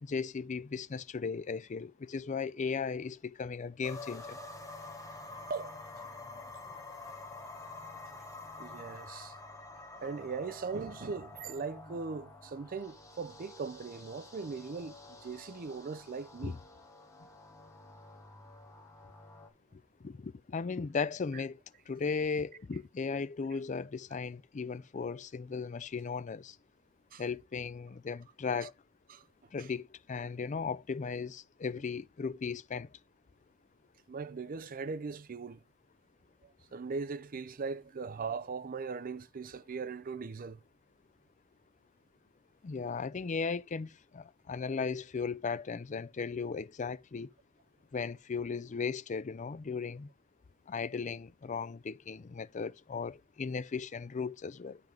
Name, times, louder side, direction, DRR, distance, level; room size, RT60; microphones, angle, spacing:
voice 1, 0.0-4.4 16.4-16.6 19.7-21.6 21.9-26.6 27.2-28.7 29.5-32.9 42.6-47.3 47.9-50.1 50.7-54.8, left 5 dB, 35° left, 0.4 m, -36 dB
sound 1, 3.8-19.5, left 2 dB, 15° left, 1.5 m, -48 dB
voice 2, 8.6-9.3 10.0-15.0 15.2-16.6 27.1-27.2 29.1-29.2 34.1-35.6 36.7-40.6, right 4 dB, 45° right, 0.5 m, -39 dB
8.9 x 5.9 x 3.4 m
head